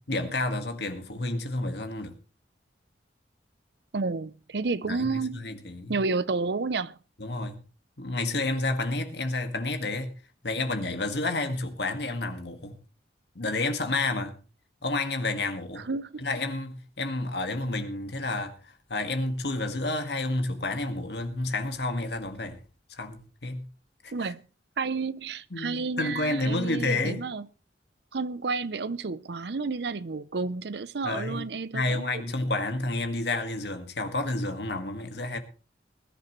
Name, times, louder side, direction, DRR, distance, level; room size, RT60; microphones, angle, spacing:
voice 1, 0.1-2.2 4.8-5.9 7.2-7.6 8.0-10.1 10.4-12.7 13.3-14.4 14.8-15.9 16.2-22.6 22.9-23.6 24.0-24.3 25.5-27.3 31.0-31.5 31.7-35.4, left 2 dB, 70° left, 1.8 m, -30 dB
voice 2, 3.9-5.4 5.9-7.0 15.8-16.2 24.1-24.4 24.8-27.5 28.1-32.2, right 4 dB, 70° right, 0.6 m, -31 dB
21.5 x 11.0 x 3.1 m
head